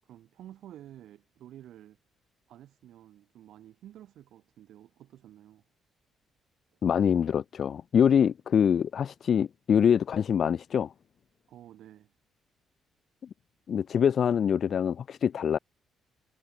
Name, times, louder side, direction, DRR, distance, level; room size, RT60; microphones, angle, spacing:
voice 1, 0.0-2.0 2.5-5.6 11.5-12.1, right 12 dB, 75° right, 7.2 m, -51 dB
voice 2, 6.8-10.9 13.7-15.6, left 8 dB, 55° left, 0.5 m, -24 dB
cardioid pair, 90°, 0 cm